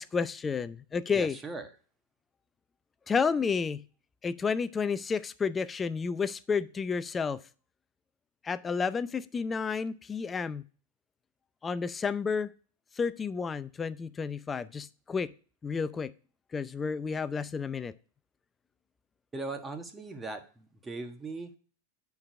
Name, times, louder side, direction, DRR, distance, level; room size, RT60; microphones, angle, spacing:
voice 1, 0.0-1.4 3.1-3.8 4.2-7.4 8.4-10.6 11.6-12.5 13.0-15.3 15.6-16.1 16.5-17.9, left 5 dB, 20° left, 15 dB, 0.5 m, -31 dB
voice 2, 1.1-1.7 19.3-21.5, right 3 dB, 15° right, 5 dB, 1.4 m, -39 dB
8.6 x 4.8 x 4.7 m, 0.38 s
hypercardioid pair, 100°, 0 cm